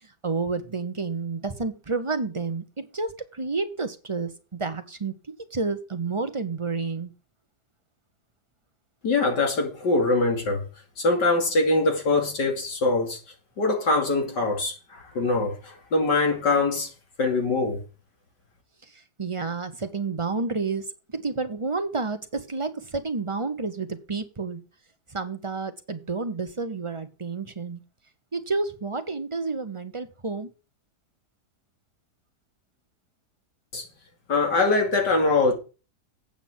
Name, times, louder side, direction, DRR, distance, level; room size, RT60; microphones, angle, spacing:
voice 1, 0.2-7.1 18.9-20.8 21.1-24.6 25.1-27.8 28.3-30.5, right 4 dB, 25° right, 0.7 m, -30 dB
voice 2, 9.0-10.7 11.0-13.2 13.6-16.9 17.2-17.8 33.7-33.8 34.3-35.5, left 3 dB, 85° left, 3.3 m, -23 dB
8.7 x 5.9 x 7.4 m
omnidirectional pair, 1.8 m